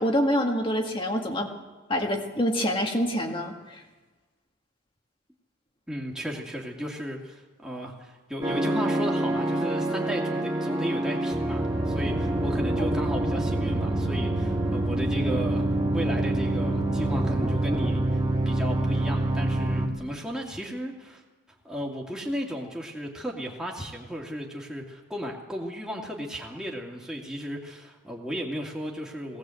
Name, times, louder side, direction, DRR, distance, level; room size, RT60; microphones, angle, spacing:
voice 1, 0.0-1.5 1.9-3.8, equal, 25° left, 2 dB, 1.9 m, -26 dB
voice 2, 5.9-18.2 18.5-21.2 21.6-29.4, equal, 5° right, -2 dB, 2.5 m, -35 dB
sound 1, 8.4-19.9, right 1 dB, 20° right, 2.1 m, -26 dB
19.0 x 18.0 x 7.9 m, 1.2 s
head